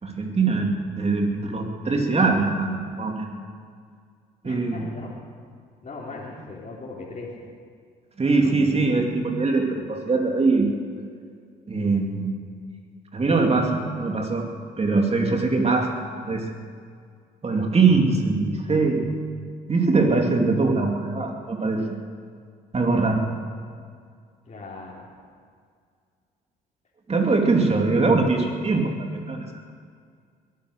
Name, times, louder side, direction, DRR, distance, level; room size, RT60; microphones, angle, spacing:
voice 1, 0.0-3.3 4.4-4.8 8.2-10.7 11.7-12.3 13.1-14.4 14.8-16.5 17.4-19.1 19.7-21.8 22.7-23.2 27.1-29.5, right 3 dB, 35° right, 2 dB, 2.7 m, -22 dB
voice 2, 4.4-5.1 5.8-7.3 24.4-25.1, left 3 dB, 40° left, -5 dB, 3.5 m, -38 dB
21.5 x 10.0 x 6.5 m, 2.1 s
hypercardioid pair, 60°, 19 cm